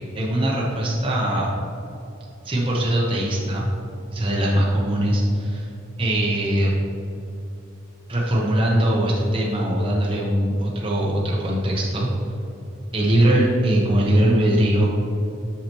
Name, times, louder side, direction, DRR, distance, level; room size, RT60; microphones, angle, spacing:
voice 1, 0.1-1.5 2.4-3.8 4.1-5.7 6.0-6.7 8.1-12.1 12.9-14.9, right 1 dB, 25° right, -4 dB, 0.8 m, -21 dB
8.3 x 5.6 x 3.0 m, 2.7 s
head